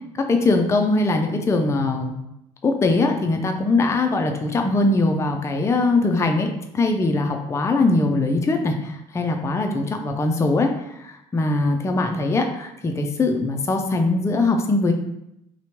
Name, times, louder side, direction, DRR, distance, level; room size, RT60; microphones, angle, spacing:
voice 1, 0.1-2.1 2.6-14.9, left 2 dB, 15° left, 4 dB, 0.4 m, -21 dB
2.7 x 2.2 x 2.8 m, 0.82 s
supercardioid pair, 75°, 16 cm